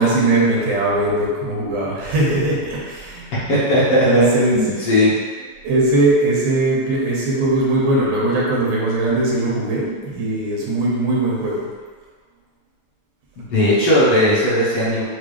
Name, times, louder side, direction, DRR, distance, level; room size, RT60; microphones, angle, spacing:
voice 1, 0.0-3.3 4.1-4.9 5.6-11.6, right 2 dB, 90° right, -5 dB, 2.5 m, -19 dB
voice 2, 3.5-4.3 4.5-5.1 13.4-15.0, left 1 dB, 60° left, -10 dB, 1.8 m, -17 dB
6.7 x 2.3 x 3.2 m, 1.5 s
omnidirectional pair, 3.4 m